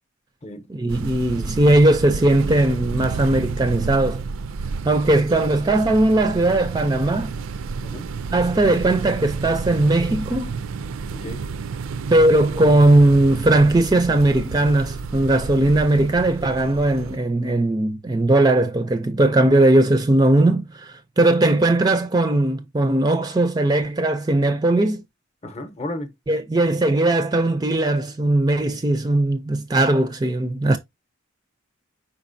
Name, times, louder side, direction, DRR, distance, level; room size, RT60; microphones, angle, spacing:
voice 1, 0.7-4.2 4.8-7.3 8.3-10.6 12.1-25.0 26.3-30.8, right 2 dB, 20° right, 0.4 m, -18 dB
sound 1, 0.9-17.2, right 4 dB, 80° right, 0.4 m, -31 dB
voice 2, 11.1-11.4 25.4-26.1, left 1 dB, 30° left, 0.7 m, -33 dB
4.9 x 4.1 x 2.6 m
head